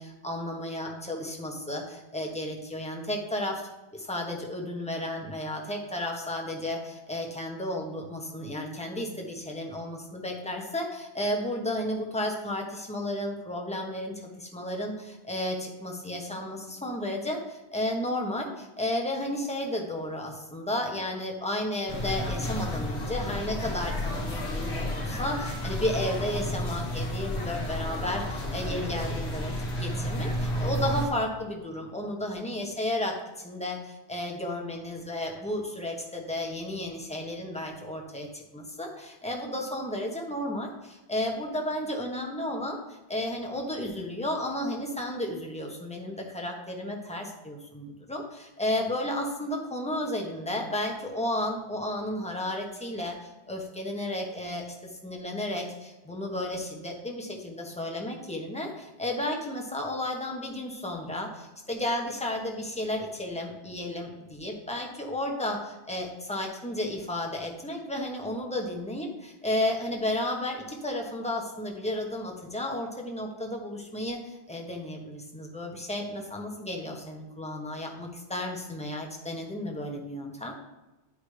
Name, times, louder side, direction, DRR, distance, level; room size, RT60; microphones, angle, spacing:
voice 1, 0.0-3.6 3.9-29.5 29.8-80.5, left 1 dB, 5° left, 0 dB, 1.0 m, -33 dB
sound 1, 21.9-31.1, left 1 dB, 75° left, 1.5 m, -31 dB
9.9 x 5.0 x 3.3 m, 1.0 s
omnidirectional pair, 1.1 m